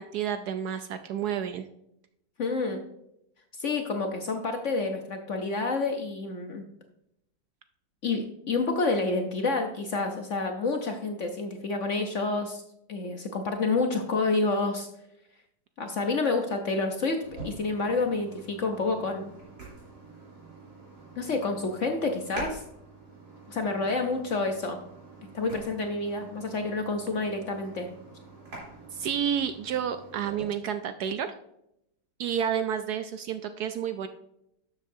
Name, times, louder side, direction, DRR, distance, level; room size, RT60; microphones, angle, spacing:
voice 1, 0.0-1.6 28.9-31.3 32.2-34.1, right 8 dB, 70° right, 9 dB, 1.0 m, -30 dB
voice 2, 2.4-2.8 3.6-6.7 8.0-12.6 12.9-14.9 15.8-19.3 21.2-22.6 23.5-24.8 25.3-27.9, left 3 dB, 55° left, 4 dB, 0.9 m, -29 dB
sound 1, 17.2-30.4, right 3 dB, 55° right, 4.0 m, -46 dB
12.0 x 7.4 x 2.7 m, 0.80 s
omnidirectional pair, 2.0 m